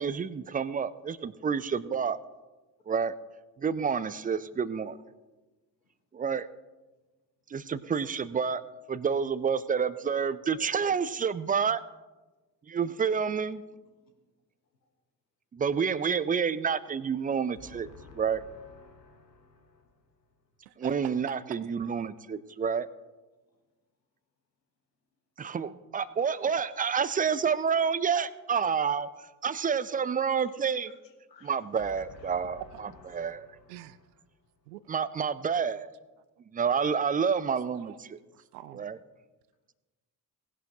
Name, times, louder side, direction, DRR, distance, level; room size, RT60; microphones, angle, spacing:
voice 1, 0.0-2.2 2.9-3.1 3.6-5.0 6.1-6.5 7.5-8.6 8.9-11.8 12.7-13.6 15.5-17.9 18.1-18.4 20.8-22.9 25.4-30.9 31.4-33.5 34.9-35.9 36.5-38.2 38.7-39.0, right 6 dB, 20° right, 17 dB, 0.5 m, -29 dB
voice 2, 17.5-19.8 30.7-30.8 31.3-31.5 31.9-34.0, left 3 dB, 85° left, 4 dB, 1.3 m, -53 dB
voice 3, 20.7-21.6 22.0-22.1 33.7-34.0 34.7-34.8 37.9-38.0 38.3-38.9, right 14 dB, 70° right, 16 dB, 0.6 m, -45 dB
18.5 x 11.0 x 2.9 m, 1.2 s
figure-of-eight pair, 45°, 49 cm